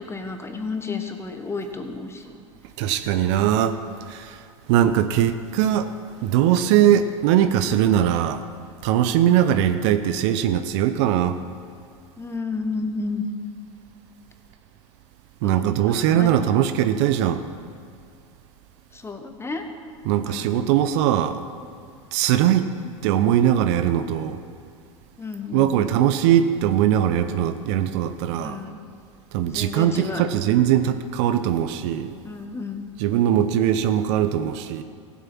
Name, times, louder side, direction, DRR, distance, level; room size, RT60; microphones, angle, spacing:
voice 1, 0.0-2.4 12.2-13.2 15.4-16.3 18.9-19.7 20.2-20.6 25.2-25.7 28.4-28.8 29.4-30.6 32.2-32.9, left 4 dB, 15° left, 6 dB, 1.2 m, -32 dB
voice 2, 2.8-3.8 4.1-4.4 4.7-5.9 6.2-8.5 8.8-11.4 15.4-17.4 20.1-21.4 22.1-22.7 23.0-24.4 25.5-28.6 29.3-32.1 33.0-34.8, right 10 dB, 60° right, 11 dB, 0.7 m, -20 dB
16.0 x 7.4 x 6.0 m, 2.3 s
hypercardioid pair, 85°, 17 cm